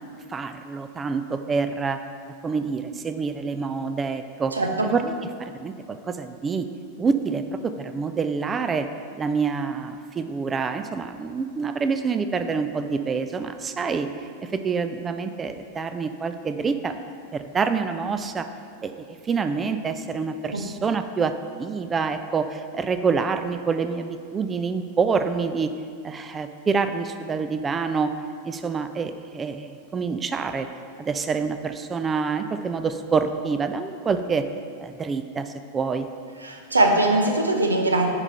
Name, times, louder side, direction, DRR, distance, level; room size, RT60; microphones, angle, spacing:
voice 1, 0.3-2.0 2.4-4.5 4.8-6.7 7.0-8.9 9.2-14.1 14.4-17.0 17.3-18.5 18.8-25.7 26.0-28.1 28.4-30.7 31.0-34.4 34.8-36.1, right 5 dB, 20° right, 9 dB, 0.4 m, -27 dB
voice 2, 4.5-4.9 20.5-20.6 36.4-38.1, right 2 dB, 80° right, 3 dB, 0.9 m, -21 dB
9.7 x 4.9 x 4.2 m, 2.2 s
figure-of-eight pair, 90°, 0 cm